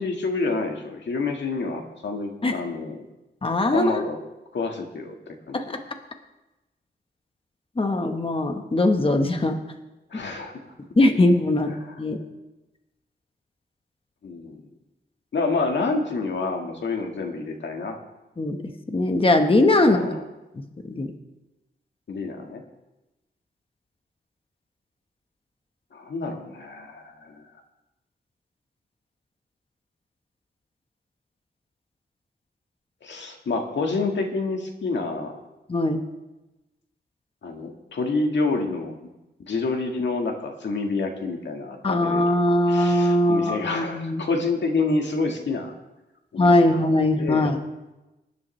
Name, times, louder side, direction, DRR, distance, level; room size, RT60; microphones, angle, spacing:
voice 1, 0.0-3.0 3.7-4.2 4.5-5.7 10.1-10.5 11.7-12.0 14.2-14.6 15.3-18.0 19.8-20.2 22.1-22.6 25.9-27.5 33.0-35.4 37.4-38.9 39.4-45.7 46.3-46.8 47.2-47.5, left 3 dB, 85° left, 3 dB, 1.7 m, -28 dB
voice 2, 3.4-3.9 5.5-5.6 7.8-9.6 11.0-12.2 18.4-18.6 18.9-20.0 20.9-21.1 35.7-36.0 41.8-44.2 46.4-47.6, left 1 dB, 30° left, 5 dB, 1.2 m, -20 dB
20.0 x 10.5 x 3.2 m, 1.0 s
wide cardioid pair, 105°, 18 cm